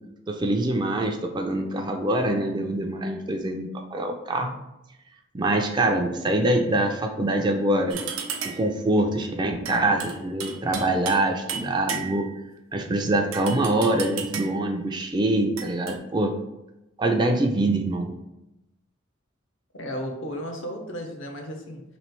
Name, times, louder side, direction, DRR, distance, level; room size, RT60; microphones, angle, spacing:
voice 1, 0.3-4.5 5.3-8.0 8.4-12.3 12.7-16.3 17.0-18.1, right 1 dB, 20° right, 3 dB, 0.3 m, -24 dB
sound 1, 7.9-8.8 9.7-11.2 11.5-12.4 13.3-14.7 15.6-16.0, right 6 dB, 85° right, 0.5 m, -34 dB
voice 2, 19.8-21.8, equal, 75° left, 3 dB, 0.7 m, -34 dB
3.1 x 2.9 x 4.4 m, 0.92 s
head